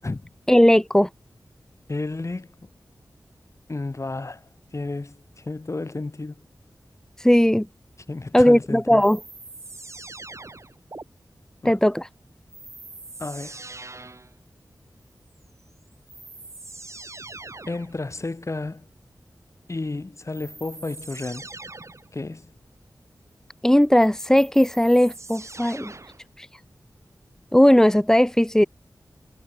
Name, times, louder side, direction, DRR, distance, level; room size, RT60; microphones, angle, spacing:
voice 1, 0.5-1.1 7.2-7.6 8.3-9.2 11.6-12.1 23.6-25.9 26.4-26.5 27.5-28.6, equal, 10° left, 1.6 m, -17 dB
voice 2, 1.9-2.5 3.7-4.4 4.7-6.4 8.1-9.0 11.6-11.8 13.2-13.6 17.7-18.9 19.7-21.5 22.1-22.5, left 3 dB, 45° left, 5.5 m, -32 dB
sound 1, 9.0-11.0 12.5-14.3 15.6-15.7 16.1-17.9 20.3-22.1 23.8-26.3, right 2 dB, 45° right, 6.9 m, -42 dB
wide cardioid pair, 65°, 7 cm